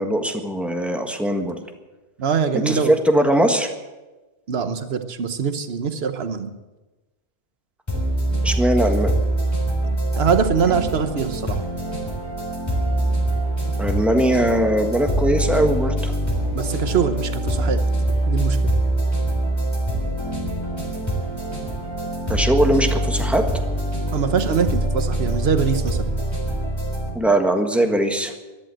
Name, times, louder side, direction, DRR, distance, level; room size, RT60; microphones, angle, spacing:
voice 1, 0.0-1.6 2.6-3.7 8.4-9.1 13.8-16.1 22.3-23.4 27.1-28.3, right 1 dB, ahead, 4 dB, 1.5 m, -20 dB
voice 2, 2.2-2.9 4.5-6.5 10.1-11.6 16.5-17.8 18.3-18.7 24.1-26.1, right 6 dB, 65° right, 9 dB, 1.3 m, -23 dB
sound 1, 7.9-27.1, right 1 dB, 25° left, 4.0 m, -24 dB
14.0 x 11.5 x 7.8 m, 1.1 s
omnidirectional pair, 1.1 m